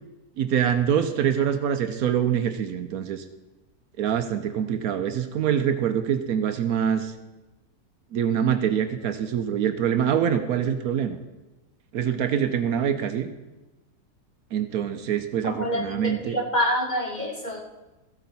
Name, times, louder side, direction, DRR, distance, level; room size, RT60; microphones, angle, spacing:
voice 1, 0.4-3.2 4.0-7.1 8.1-11.2 11.9-13.3 14.5-16.4, right 8 dB, 70° right, 9 dB, 1.1 m, -25 dB
voice 2, 15.4-17.6, equal, 30° left, 1 dB, 1.1 m, -27 dB
14.5 x 8.2 x 4.1 m, 1.1 s
omnidirectional pair, 1.7 m